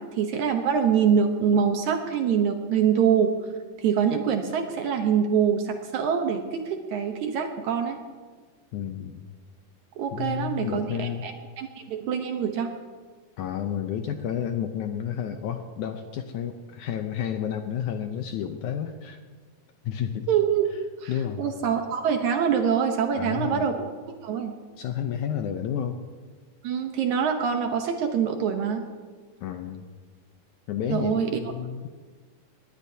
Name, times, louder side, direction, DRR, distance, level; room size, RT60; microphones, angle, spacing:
voice 1, 0.0-3.3 3.8-8.0 10.0-12.7 20.3-20.7 21.0-21.1 21.4-23.9 24.2-24.6 26.6-28.9 30.9-31.3, right 7 dB, 70° right, 5 dB, 2.1 m, -25 dB
voice 2, 8.7-9.3 10.1-11.3 13.4-19.2 19.8-20.3 21.1-21.4 23.1-23.7 24.8-26.0 29.4-29.9 30.7-31.9, left 9 dB, 75° left, 6 dB, 1.9 m, -31 dB
20.5 x 18.5 x 2.8 m, 1.5 s
omnidirectional pair, 4.1 m